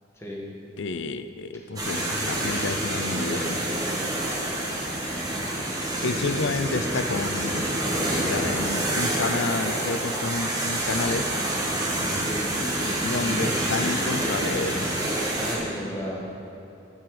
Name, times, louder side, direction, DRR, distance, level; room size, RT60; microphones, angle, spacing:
voice 1, 0.8-3.6 6.0-7.8 8.3-11.3 13.0-14.9, left 3 dB, 65° left, 11 dB, 0.5 m, -30 dB
sound 1, 1.8-15.6, right 1 dB, 20° right, 1.8 m, -27 dB
voice 2, 15.3-16.2, equal, 15° left, -4 dB, 1.9 m, -34 dB
13.0 x 9.6 x 5.0 m, 2.8 s
head